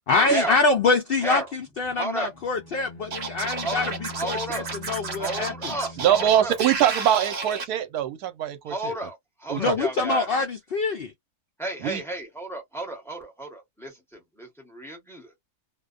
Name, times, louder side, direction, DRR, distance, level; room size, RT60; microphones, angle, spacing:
voice 1, 0.1-5.8 9.6-11.1, left 3 dB, 75° left, 0.5 m, -25 dB
voice 2, 1.9-2.3 3.6-3.9 4.2-4.7 5.2-6.6 8.7-10.3 11.6-15.3, right 2 dB, ahead, 0.8 m, -33 dB
Bowed string instrument, 2.2-7.0, left 2 dB, 40° left, 0.7 m, -43 dB
Scratching (performance technique), 3.1-7.6, right 4 dB, 50° right, 0.9 m, -32 dB
voice 3, 6.0-8.9 9.5-9.7 11.8-12.0, right 11 dB, 85° right, 1.1 m, -23 dB
2.5 x 2.2 x 2.4 m
omnidirectional pair, 1.6 m